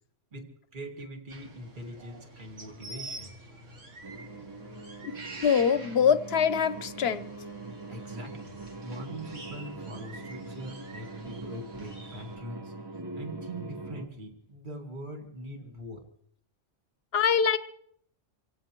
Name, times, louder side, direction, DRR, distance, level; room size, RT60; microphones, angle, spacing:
voice 1, 0.3-3.3 7.9-12.7 13.1-16.1, right 1 dB, 40° right, 2.2 m, -42 dB
sound 1, 1.3-12.4, right 2 dB, 75° right, 2.3 m, -47 dB
sound 2, 4.0-14.1, right 3 dB, 20° right, 1.0 m, -42 dB
voice 2, 5.4-7.3 17.1-17.6, left 7 dB, 60° left, 1.0 m, -24 dB
26.5 x 17.0 x 3.0 m
omnidirectional pair, 1.3 m